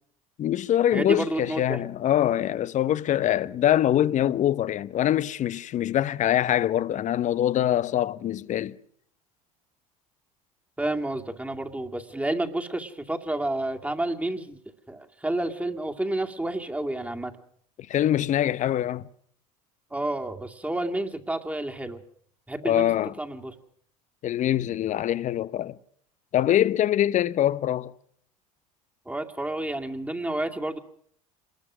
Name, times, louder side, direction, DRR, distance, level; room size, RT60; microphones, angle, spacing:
voice 1, 0.4-8.8 17.9-19.1 22.6-23.1 24.2-25.8 26.3-27.9, left 11 dB, 40° left, 0.9 m, -24 dB
voice 2, 0.9-1.8 10.8-14.6 14.9-17.3 19.9-22.0 22.5-22.9 23.2-23.6 29.1-30.8, right 1 dB, 10° right, 2.3 m, -30 dB
27.0 x 21.0 x 6.2 m
hypercardioid pair, 80°, 19 cm